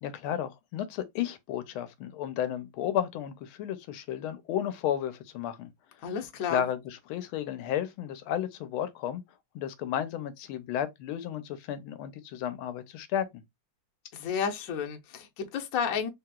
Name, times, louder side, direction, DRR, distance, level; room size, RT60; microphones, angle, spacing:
voice 1, 0.0-5.7 6.5-9.2 9.5-13.4, left 10 dB, 90° left, 1.5 m, -33 dB
voice 2, 6.0-6.7 14.1-16.1, left 7 dB, 65° left, 0.8 m, -31 dB
3.4 x 2.8 x 2.2 m
omnidirectional pair, 2.3 m